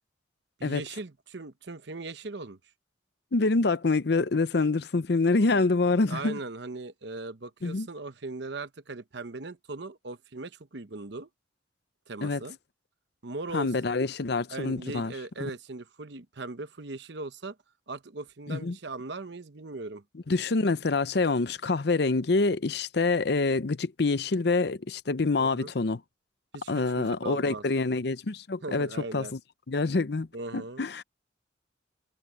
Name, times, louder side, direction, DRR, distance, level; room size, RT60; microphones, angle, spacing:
voice 1, 0.6-2.6 6.1-11.3 12.1-12.6 13.2-13.7 14.5-17.6 17.9-20.0 25.4-25.7 26.5-27.6 28.6-29.3 30.3-30.8, right 3 dB, 65° right, 1.0 m, -39 dB
voice 2, 3.3-6.4 7.6-7.9 12.2-12.4 13.5-15.1 15.4-15.5 18.5-18.8 20.3-26.0 26.7-29.4 29.7-30.3 30.5-31.0, left 3 dB, 60° left, 0.7 m, -26 dB
head